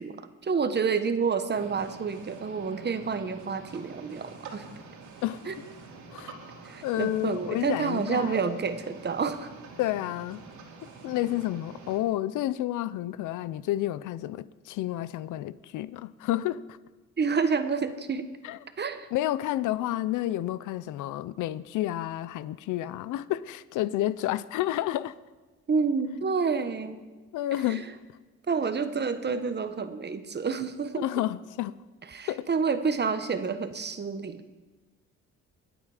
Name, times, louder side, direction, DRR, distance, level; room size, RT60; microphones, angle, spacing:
voice 1, 0.0-4.6 5.5-5.6 6.6-9.5 17.2-18.3 18.8-19.1 25.7-27.0 27.7-27.8 28.5-31.0 32.1-34.4, right 5 dB, 35° right, 1.2 m, -29 dB
sound 1, 1.5-12.0, right 4 dB, 75° right, 2.5 m, -46 dB
voice 2, 6.8-8.5 9.8-10.4 10.8-16.8 18.4-18.6 19.1-25.1 27.3-27.9 31.0-31.8 32.3-32.5, left 14 dB, 85° left, 0.6 m, -30 dB
21.5 x 8.9 x 5.0 m
cardioid pair, 90°, 30 cm